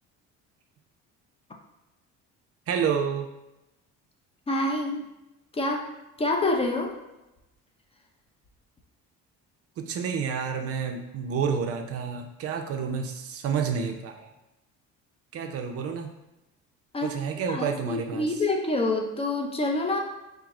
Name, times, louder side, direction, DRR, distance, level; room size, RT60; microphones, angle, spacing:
voice 1, 2.7-3.3 9.8-14.3 15.3-16.1 17.0-18.3, right 6 dB, 50° right, 4 dB, 0.5 m, -29 dB
voice 2, 4.5-5.1 5.5-5.9 6.2-6.9 16.9-17.2 17.5-20.0, left 2 dB, 20° left, 2 dB, 0.5 m, -27 dB
4.5 x 2.0 x 3.6 m, 0.97 s
cardioid pair, 110°, 30 cm